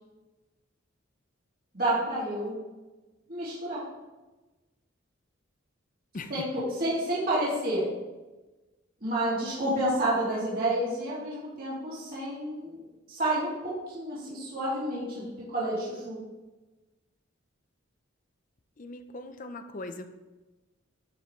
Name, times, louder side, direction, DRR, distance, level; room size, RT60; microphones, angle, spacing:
voice 1, 1.7-2.6 3.3-3.8 6.3-7.8 9.0-12.8 13.1-16.2, right 1 dB, 45° right, -8 dB, 2.5 m, -29 dB
voice 2, 18.8-20.1, left 2 dB, 40° left, 9 dB, 0.6 m, -40 dB
11.5 x 5.3 x 3.2 m, 1.2 s
head